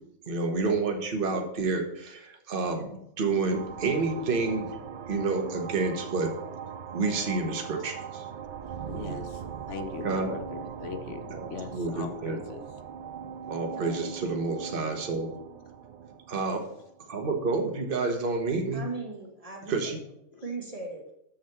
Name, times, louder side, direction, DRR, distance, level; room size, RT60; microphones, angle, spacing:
voice 1, 0.3-4.8 5.1-6.3 6.9-8.3 10.0-10.4 11.3-12.4 13.5-15.3 16.3-16.6 17.1-18.8 19.7-20.0, right 3 dB, 40° right, 3 dB, 1.3 m, -29 dB
sound 1, 3.5-17.6, right 7 dB, 80° right, 0.4 m, -40 dB
voice 2, 8.9-9.4 9.7-12.6, left 6 dB, 60° left, 7 dB, 1.0 m, -39 dB
voice 3, 13.7-14.1 18.7-19.9 20.4-21.0, right 3 dB, 25° right, 1 dB, 1.7 m, -38 dB
6.8 x 6.3 x 5.7 m, 0.75 s
omnidirectional pair, 1.5 m